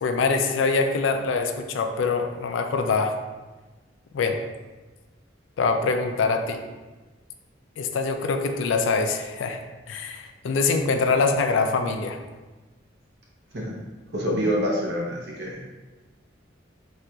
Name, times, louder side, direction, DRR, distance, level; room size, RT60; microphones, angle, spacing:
voice 1, 0.0-3.1 4.1-4.4 5.6-6.6 7.8-9.6 9.9-12.2, left 4 dB, 85° left, 5 dB, 0.3 m, -24 dB
voice 2, 14.1-15.6, equal, 60° right, -3 dB, 0.7 m, -26 dB
4.1 x 2.4 x 2.2 m, 1.2 s
head